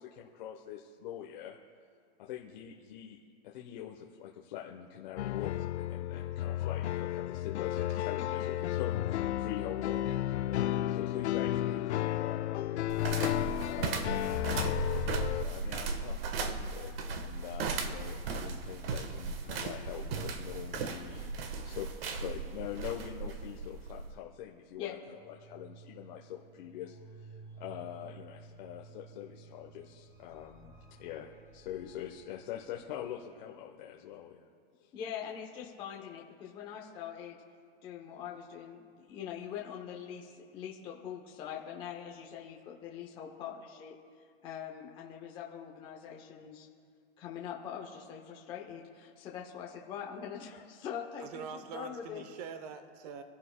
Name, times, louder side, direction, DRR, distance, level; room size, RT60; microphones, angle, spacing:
voice 1, 0.0-1.6 2.2-14.2 14.5-16.9 17.2-21.3 21.6-30.7 31.0-34.5 34.8-34.9, left 10 dB, 45° left, -1 dB, 0.9 m, -44 dB
sound 1, 5.2-15.4, left 13 dB, 80° left, 0.5 m, -33 dB
sound 2, 12.9-24.1, right 4 dB, 60° right, 1.3 m, -36 dB
sound 3, 25.0-33.3, right 4 dB, 10° right, 1.0 m, -54 dB
voice 2, 34.9-37.4 37.8-43.9 44.4-46.7 47.2-52.2, left 8 dB, 15° left, -1 dB, 0.8 m, -43 dB
voice 3, 51.2-53.2, right 6 dB, 40° right, 9 dB, 0.8 m, -44 dB
25.0 x 11.5 x 2.2 m, 2.1 s
supercardioid pair, 165°, 33 cm